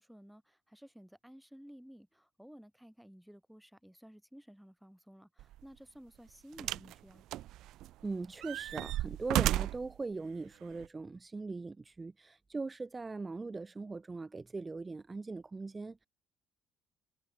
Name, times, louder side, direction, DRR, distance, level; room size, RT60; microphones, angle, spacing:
voice 1, 0.0-7.2, equal, ahead, 4.9 m, -55 dB
sound 1, 5.4-5.6 6.6-6.9 7.3-8.0 8.4-9.9 10.8-10.9, right 15 dB, 65° right, 0.4 m, -33 dB
voice 2, 8.0-16.1, right 3 dB, 25° right, 1.1 m, -40 dB
hypercardioid pair, 50°, 0 cm